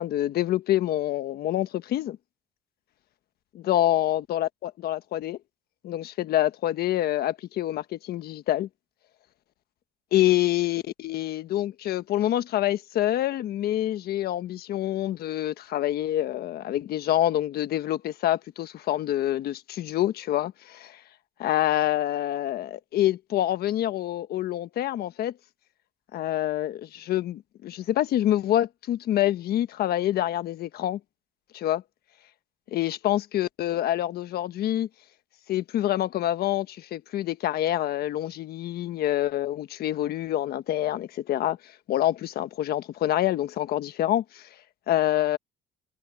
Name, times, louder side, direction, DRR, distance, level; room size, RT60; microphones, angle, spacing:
voice 1, 0.0-2.2 3.7-5.4 5.8-8.7 10.1-21.0 21.4-25.3 26.1-31.0 31.5-31.8 32.7-34.9 35.5-44.5 44.9-45.4, left 13 dB, 65° left, 1.3 m, -26 dB
cardioid pair, 110°, 17 cm